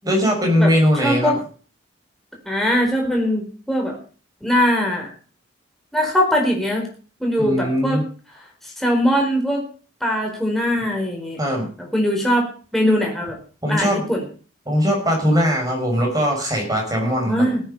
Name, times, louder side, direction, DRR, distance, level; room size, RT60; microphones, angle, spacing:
voice 1, 0.0-1.3 7.4-8.0 11.4-11.7 13.6-14.0 14.7-17.5, equal, 20° right, 1 dB, 6.1 m, -20 dB
voice 2, 1.0-1.4 2.5-4.0 4.4-5.1 5.9-6.9 7.2-8.0 8.8-9.6 10.0-11.4 11.9-13.4 13.7-14.2 17.2-17.6, equal, ahead, -1 dB, 4.5 m, -21 dB
17.0 x 9.5 x 5.6 m, 0.40 s
head